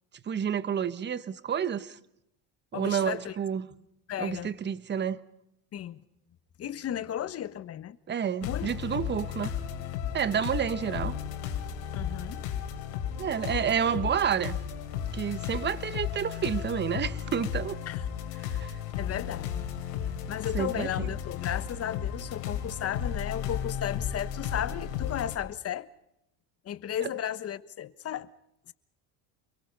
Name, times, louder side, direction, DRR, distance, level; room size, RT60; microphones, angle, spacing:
voice 1, 0.3-2.0 2.7-3.7 4.2-5.2 8.1-9.5 10.1-11.2 13.2-14.6 15.1-17.8 18.5-18.7 20.5-21.1 27.0-27.1, right 8 dB, 25° right, 1.2 m, -29 dB
voice 2, 2.7-3.3 4.1-4.5 5.7-6.0 6.6-8.0 8.4-8.7 11.9-12.5 17.9-18.0 19.0-19.6 20.3-25.9 26.6-28.3, left 10 dB, 35° left, 1.3 m, -34 dB
sound 1, 8.4-25.4, left 9 dB, 85° left, 4.0 m, -34 dB
29.5 x 22.5 x 5.5 m
cardioid pair, 125°, 39 cm